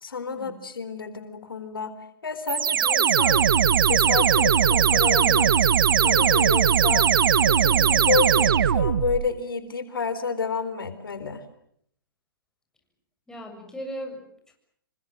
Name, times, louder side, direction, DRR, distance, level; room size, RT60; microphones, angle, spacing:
voice 1, 0.0-1.9 2.2-3.4 3.9-5.7 6.0-7.1 7.5-11.4, left 5 dB, 80° left, 11 dB, 4.0 m, -29 dB
sound 1, 2.5-9.3, right 8 dB, 70° right, 1.3 m, -20 dB
voice 2, 13.3-14.5, equal, 5° left, 2 dB, 7.4 m, -38 dB
28.0 x 24.0 x 7.6 m, 0.69 s
hypercardioid pair, 130°, 12 cm